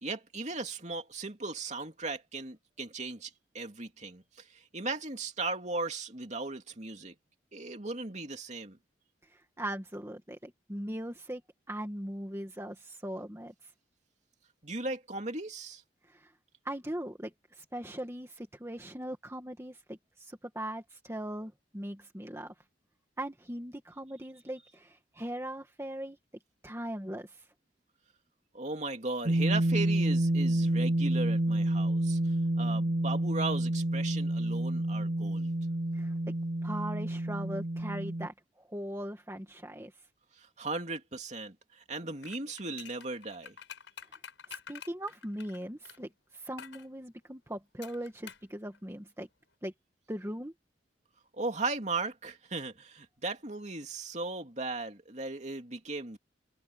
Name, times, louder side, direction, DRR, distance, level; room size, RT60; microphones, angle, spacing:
voice 1, 0.0-4.2 4.5-7.1 7.5-8.8 14.6-15.8 28.5-32.2 32.6-35.5 40.4-43.5 51.3-56.2, right 3 dB, 40° right, 2.8 m, -37 dB
voice 2, 9.3-11.4 11.7-13.7 16.1-16.3 16.6-22.5 23.2-26.2 26.6-27.4 35.9-36.3 36.6-39.9 44.5-49.3 49.6-49.7 50.1-50.5, right 1 dB, 15° right, 1.9 m, -40 dB
sound 1, 29.3-38.3, right 1 dB, 55° right, 1.0 m, -29 dB
sound 2, 42.2-46.0 46.6-46.9 47.8-48.5 48.7-48.8, left 7 dB, 80° left, 5.4 m, -48 dB
head